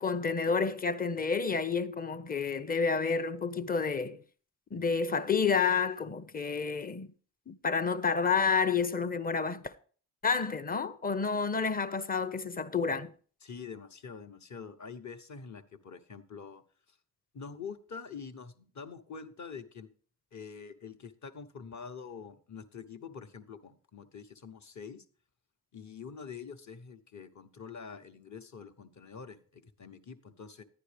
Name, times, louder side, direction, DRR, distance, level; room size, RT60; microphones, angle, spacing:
voice 1, 0.0-4.2 4.7-7.1 7.5-9.7 10.2-13.1, left 5 dB, 20° left, 0.7 m, -30 dB
voice 2, 13.4-16.6 16.9-17.0 17.3-19.9 20.3-25.0 25.7-30.6, left 6 dB, 40° left, 1.0 m, -46 dB
11.0 x 9.4 x 3.4 m
supercardioid pair, 55°, 44 cm